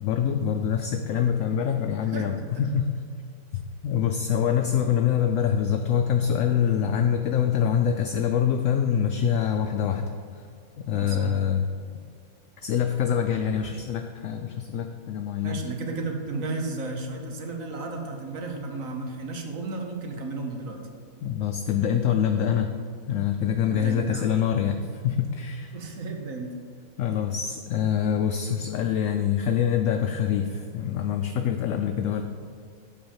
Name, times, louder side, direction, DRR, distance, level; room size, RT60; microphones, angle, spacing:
voice 1, 0.0-3.0 3.8-10.4 10.8-11.6 12.6-15.6 21.2-22.7 23.1-25.7 27.0-32.2, left 8 dB, 70° left, 5 dB, 0.8 m, -25 dB
voice 2, 2.1-2.6 10.9-11.4 15.4-20.8 23.7-24.3 25.7-26.6, right 3 dB, 60° right, 2 dB, 1.4 m, -33 dB
7.8 x 4.9 x 7.2 m, 2.2 s
omnidirectional pair, 1.6 m